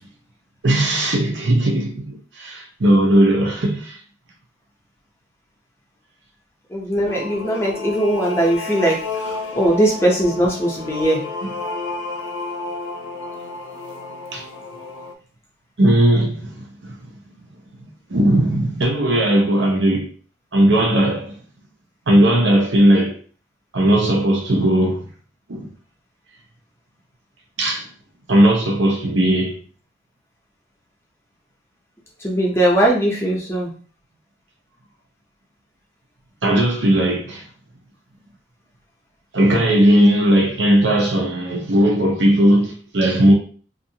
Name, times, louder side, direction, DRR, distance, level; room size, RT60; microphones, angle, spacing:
voice 1, 0.6-4.0 11.4-11.5 14.3-14.4 15.8-17.1 18.1-20.1 20.5-21.4 22.1-23.2 23.7-25.0 25.5-25.7 27.6-27.9 28.3-29.6 36.4-37.4 39.3-43.3, right 1 dB, 80° right, 0.8 m, -17 dB
voice 2, 6.7-11.2 32.2-33.7, right 1 dB, 15° left, 0.6 m, -20 dB
sound 1, 7.0-15.1, left 3 dB, 85° left, 0.4 m, -31 dB
2.5 x 2.4 x 2.8 m
head